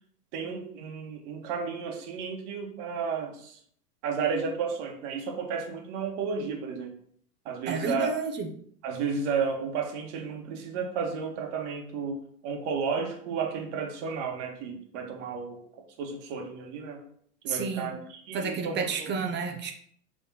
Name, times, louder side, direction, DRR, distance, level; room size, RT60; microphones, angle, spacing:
voice 1, 0.3-3.6 4.0-6.9 7.4-8.1 8.8-12.2 12.4-15.6 16.0-17.0 17.4-19.1, right 6 dB, 50° right, 2 dB, 1.7 m, -32 dB
voice 2, 7.7-8.5 17.5-18.0 18.3-19.7, right 4 dB, 25° right, 4 dB, 0.9 m, -30 dB
6.2 x 3.6 x 4.3 m, 0.62 s
hypercardioid pair, 115°, 47 cm